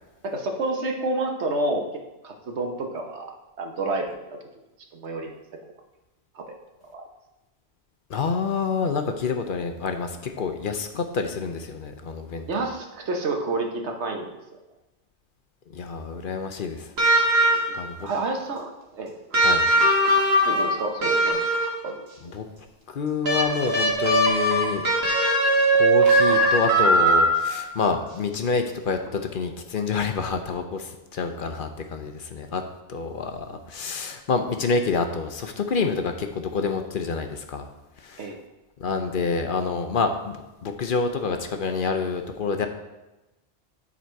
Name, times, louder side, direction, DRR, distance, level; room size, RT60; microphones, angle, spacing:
voice 1, 0.2-1.9 2.2-3.3 3.6-4.2 4.9-5.4 6.3-6.5 6.9-7.0 12.5-14.3 17.5-19.1 19.4-19.5 20.4-21.4 21.8-22.0 38.2-38.4, right 2 dB, 90° right, 3 dB, 1.3 m, -29 dB
voice 2, 8.1-12.4 15.7-16.9 17.7-18.1 19.4-19.6 22.3-22.5 22.9-24.9 25.7-32.6 32.9-37.7 38.0-38.3 38.8-42.7, left 4 dB, 55° left, 6 dB, 0.8 m, -27 dB
sound 1, 17.0-17.9 19.3-21.9 23.2-27.7 29.1-29.2, right 1 dB, 65° right, 1.7 m, -20 dB
10.0 x 4.1 x 4.6 m, 1.0 s
omnidirectional pair, 1.1 m